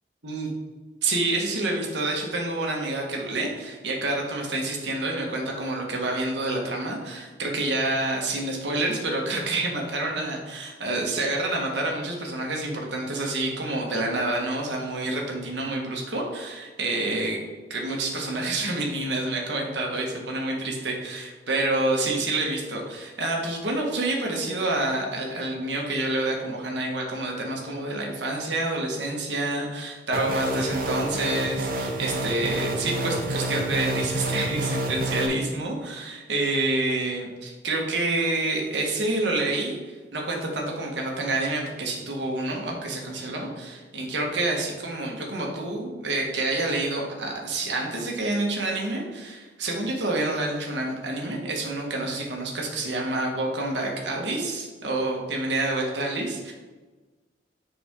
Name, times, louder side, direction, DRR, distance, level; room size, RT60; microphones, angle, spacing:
voice 1, 1.0-17.4 17.7-56.5, right 2 dB, 70° right, 0 dB, 1.6 m, -28 dB
sound 1, 30.1-35.3, right 1 dB, 50° right, 0.9 m, -28 dB
7.0 x 6.1 x 3.7 m, 1.3 s
head